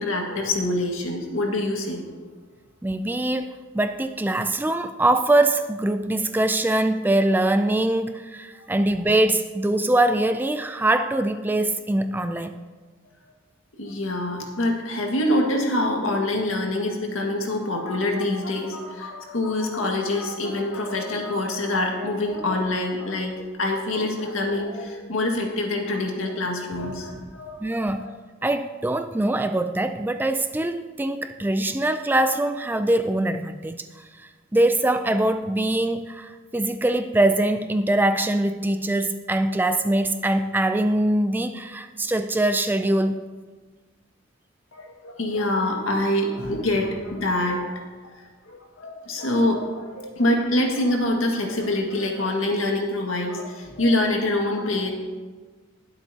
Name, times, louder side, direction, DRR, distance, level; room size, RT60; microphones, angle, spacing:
voice 1, 0.0-2.0 13.8-27.6 28.0-28.1 44.7-47.8 48.2-54.9, left 1 dB, 75° left, 1 dB, 1.9 m, -25 dB
voice 2, 2.8-12.6 27.6-28.1 28.4-43.2, right 1 dB, 10° right, 9 dB, 0.3 m, -23 dB
21.0 x 8.0 x 2.9 m, 1.4 s
head